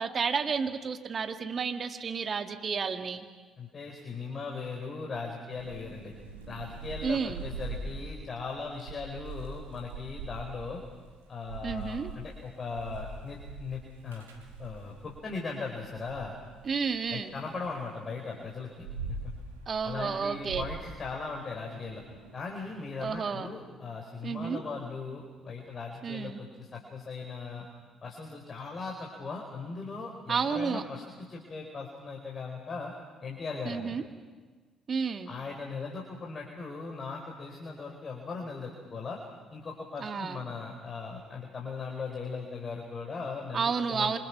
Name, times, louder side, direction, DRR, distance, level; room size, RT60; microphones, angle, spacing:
voice 1, 0.0-3.2 7.0-7.4 11.6-12.1 16.6-17.3 19.7-20.7 23.0-23.5 24.2-24.6 26.0-26.4 30.3-30.8 33.7-34.0 34.9-35.3 40.0-40.4 43.5-44.2, right 5 dB, 45° right, 8 dB, 2.0 m, -31 dB
voice 2, 3.6-6.1 6.5-10.8 11.3-14.2 14.6-16.3 17.1-19.2 19.8-22.0 22.3-27.6 28.0-31.0 31.3-32.9 33.2-33.9 35.3-39.2 39.5-44.2, left 4 dB, 40° left, 0 dB, 4.4 m, -38 dB
Thunder / Rain, 5.6-15.3 15.7-17.7 18.3-23.1, right 3 dB, 90° right, 2.2 m, -43 dB
28.0 x 25.5 x 5.8 m, 1.4 s
hypercardioid pair, 50°, 0 cm